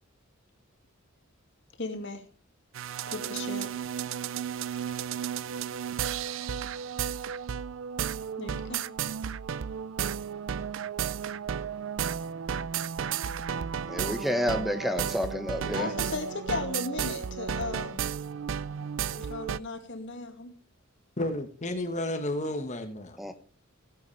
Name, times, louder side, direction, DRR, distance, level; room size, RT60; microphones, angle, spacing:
voice 1, 1.8-2.2 3.1-3.7 8.4-8.9 15.7-18.1 19.1-20.5, left 3 dB, 60° left, 2.2 m, -36 dB
sound 1, 2.7-19.6, right 8 dB, 65° right, 0.4 m, -33 dB
voice 2, 13.9-15.9 23.2-23.3, equal, ahead, 1.2 m, -29 dB
voice 3, 21.2-23.2, left 1 dB, 35° left, 1.4 m, -32 dB
17.0 x 8.4 x 3.3 m
head